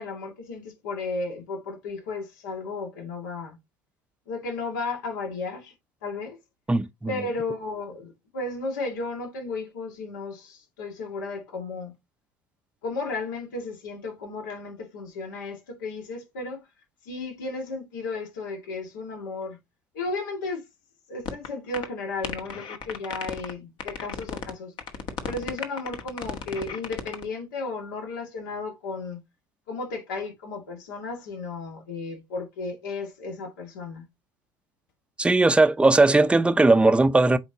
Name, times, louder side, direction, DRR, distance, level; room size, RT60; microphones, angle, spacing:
voice 1, 0.0-3.6 4.3-5.7 6.0-6.4 7.1-11.9 12.8-16.6 17.1-19.6 19.9-20.6 21.1-24.7 25.2-29.2 29.7-34.0, left 3 dB, 75° left, 2.0 m, -34 dB
voice 2, 6.7-7.1 35.2-37.4, right 2 dB, 10° right, 0.7 m, -18 dB
sound 1, 21.3-21.5 21.7-21.9 22.2-23.5 23.8-24.5 24.8-27.2, left 6 dB, 50° left, 1.4 m, -34 dB
7.8 x 4.3 x 2.9 m
hypercardioid pair, 70°, 10 cm